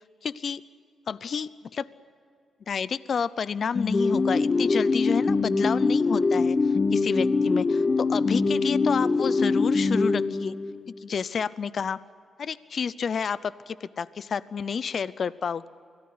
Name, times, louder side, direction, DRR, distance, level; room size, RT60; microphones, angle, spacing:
voice 1, 0.2-0.6 1.1-1.9 2.7-10.5 11.0-12.0 12.4-15.7, left 6 dB, 60° left, 18 dB, 0.6 m, -30 dB
sound 1, 3.7-10.9, left 3 dB, 40° left, 1.0 m, -23 dB
24.5 x 17.5 x 9.6 m, 2.3 s
cardioid pair, 70°, 0 cm